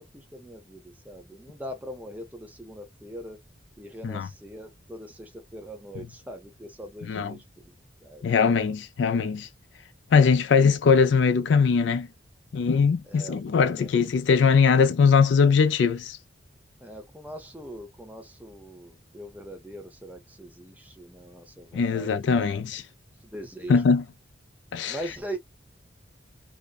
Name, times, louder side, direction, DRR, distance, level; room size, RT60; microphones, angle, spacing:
voice 1, 0.1-3.4 3.8-7.7 8.0-8.2 13.1-13.9 16.8-22.6 23.2-23.8 24.9-25.4, equal, 10° right, 0.6 m, -41 dB
voice 2, 7.1-7.4 8.2-9.5 10.1-12.1 12.5-16.2 21.7-22.8 23.7-24.0 24.7-25.0, left 5 dB, 75° left, 0.4 m, -21 dB
2.5 x 2.1 x 2.3 m
head